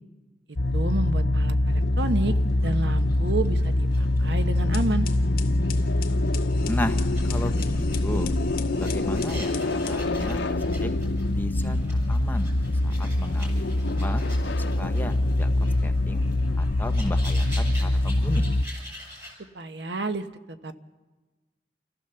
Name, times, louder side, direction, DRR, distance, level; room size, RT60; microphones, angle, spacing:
sound 1, 0.6-18.6, left 1 dB, 85° left, 0.8 m, -24 dB
voice 1, 0.7-2.3 2.6-5.1 19.5-20.3 20.6-20.8, right 2 dB, 75° right, 9 dB, 1.1 m, -30 dB
sound 2, 2.1-19.3, left 1 dB, 15° right, 6.7 m, -46 dB
sound 3, 4.5-10.8, left 3 dB, 55° left, 1.8 m, -38 dB
voice 2, 6.6-8.3 8.8-10.9 11.3-11.8 12.1-12.5 12.8-14.2 14.6-16.3 16.6-18.4, left 1 dB, 10° left, 6 dB, 1.0 m, -35 dB
29.5 x 14.5 x 6.9 m, 1.2 s
head